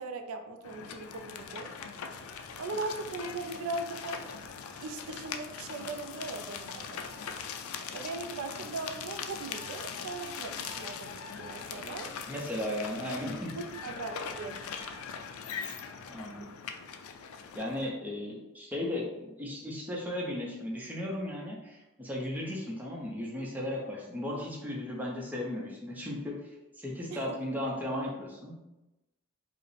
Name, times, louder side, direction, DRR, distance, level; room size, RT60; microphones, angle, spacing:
voice 1, 0.0-1.8 2.6-4.3 4.8-7.1 7.9-12.1 13.5-14.6 27.1-27.4, right 3 dB, 80° right, 6 dB, 0.4 m, -39 dB
sound 1, 0.6-17.9, left 6 dB, 80° left, 0.4 m, -41 dB
voice 2, 12.3-13.5 16.0-16.5 17.5-26.4 26.8-28.6, left 1 dB, 10° right, -3 dB, 0.6 m, -36 dB
4.8 x 2.0 x 3.2 m, 1.0 s
head